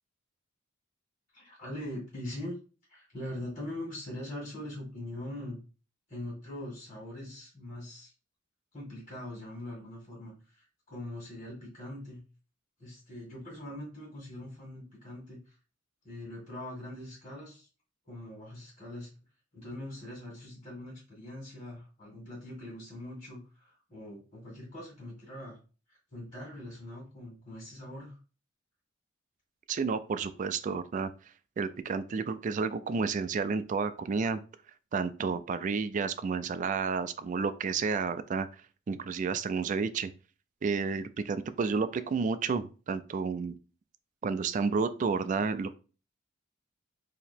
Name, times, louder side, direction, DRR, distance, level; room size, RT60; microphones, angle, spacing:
voice 1, 1.3-2.5 2.9-5.6 6.1-8.1 8.7-12.2 12.8-15.6 16.0-17.7 18.0-19.1 19.5-25.6 25.9-28.2, left 1 dB, 35° left, -4 dB, 1.6 m, -42 dB
voice 2, 29.7-31.1 31.6-34.4 34.9-38.5 38.9-40.1 40.6-43.6 44.2-45.8, right 5 dB, 40° right, 12 dB, 0.3 m, -31 dB
2.9 x 2.8 x 4.3 m, 0.35 s
head